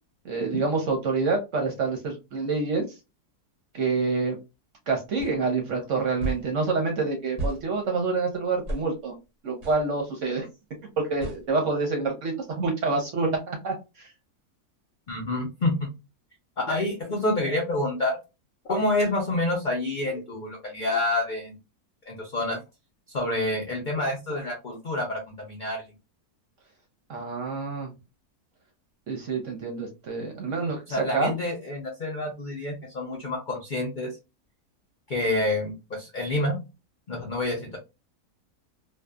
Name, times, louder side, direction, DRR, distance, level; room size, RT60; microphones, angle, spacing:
voice 1, 0.2-2.8 3.7-4.4 4.9-9.1 9.4-10.5 11.0-14.1 27.1-27.9 29.1-30.8 31.1-31.3, right 4 dB, 60° right, 2 dB, 0.9 m, -27 dB
sound 1, 5.2-5.3 6.2-6.5 7.4-7.6 8.7-8.9 9.6-9.8 11.2-11.4, right 1 dB, 35° right, 0.6 m, -31 dB
voice 2, 15.1-15.9 16.6-18.2 18.7-21.6 22.1-22.6 23.1-25.8 30.9-34.2 35.1-36.6 37.1-37.8, left 2 dB, 75° left, 0 dB, 0.4 m, -28 dB
2.6 x 2.3 x 2.2 m, 0.26 s
omnidirectional pair, 1.7 m